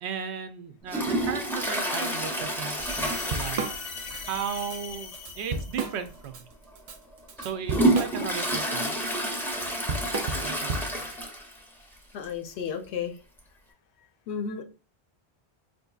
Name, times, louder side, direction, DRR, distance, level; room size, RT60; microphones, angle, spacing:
voice 1, 0.0-3.7 4.1-6.5 7.4-9.0 10.4-11.1, right 7 dB, 90° right, 9 dB, 0.8 m, -36 dB
Toilet flush, 0.9-4.3 4.6-4.7 5.1-5.2 6.1-6.2 6.7-11.6 12.0-12.1 12.2-12.3 13.4-13.5, right 1 dB, 5° left, 0.5 m, -29 dB
Drum kit / Drum, 2.5-2.6 2.9-4.2 4.6-4.8 5.1-6.4 6.8-11.1, right 3 dB, 55° right, 0.4 m, -33 dB
sound 1, 2.8-6.1, left 5 dB, 50° left, 0.6 m, -40 dB
voice 2, 12.1-13.1 14.3-14.6, left 7 dB, 90° left, 8 dB, 0.9 m, -32 dB
4.3 x 2.6 x 2.3 m, 0.33 s
omnidirectional pair, 1.1 m